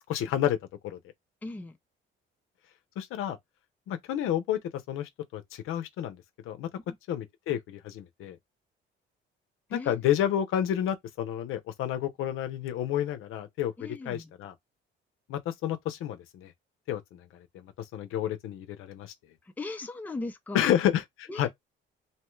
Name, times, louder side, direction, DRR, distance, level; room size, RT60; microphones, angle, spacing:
voice 1, 0.1-0.6 0.8-1.0 3.0-3.4 3.9-4.6 4.9-6.2 6.5-6.7 7.1-8.4 9.7-14.5 15.3-16.5 16.9-17.2 17.5-19.1 20.5-21.5, left 11 dB, 80° left, 0.6 m, -30 dB
voice 2, 1.4-1.8 6.9-7.0 9.7-10.0 13.8-14.3 19.6-20.7 21.3-21.5, left 2 dB, 10° left, 0.5 m, -38 dB
2.7 x 2.2 x 3.1 m
cardioid pair, 125°, 21 cm